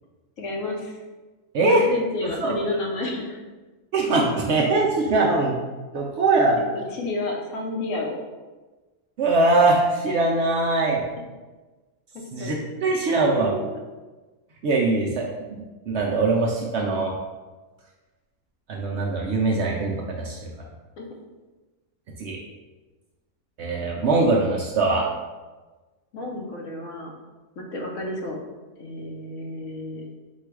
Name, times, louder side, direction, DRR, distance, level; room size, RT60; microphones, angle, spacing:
voice 1, 0.4-1.0 1.7-3.4 6.6-8.2 12.4-12.5 13.1-13.7 21.0-21.1 26.1-27.1 27.6-28.4 28.8-30.1, left 2 dB, 65° left, 0 dB, 1.0 m, -31 dB
voice 2, 1.5-1.8 2.4-2.5 3.9-5.5 5.9-6.6 9.2-11.0 12.3-13.5 14.6-17.1 18.7-20.5 22.2-22.4 23.6-25.1, right 3 dB, 65° right, -2 dB, 0.7 m, -22 dB
4.5 x 2.3 x 4.6 m, 1.3 s
omnidirectional pair, 1.5 m